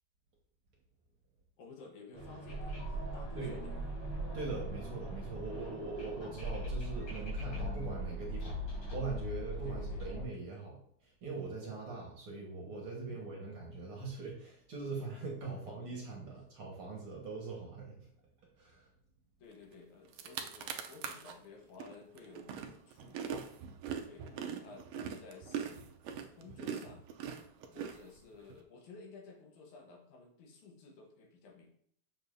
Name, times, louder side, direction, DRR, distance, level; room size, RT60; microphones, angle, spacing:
voice 1, 1.6-3.7 9.6-10.0 13.1-13.5 15.5-16.4 19.4-23.4 24.0-27.0 27.7-31.7, left 4 dB, 75° left, 2 dB, 2.5 m, -54 dB
sound 1, 2.1-10.2, equal, 45° left, 4.2 m, -40 dB
voice 2, 4.3-18.1 18.6-18.9, right 4 dB, 55° right, -2 dB, 1.9 m, -42 dB
sound 2, 19.7-19.8 20.1-21.3 21.8-28.5, right 7 dB, 75° right, 1.5 m, -42 dB
7.3 x 6.9 x 2.6 m, 0.65 s
omnidirectional pair, 3.5 m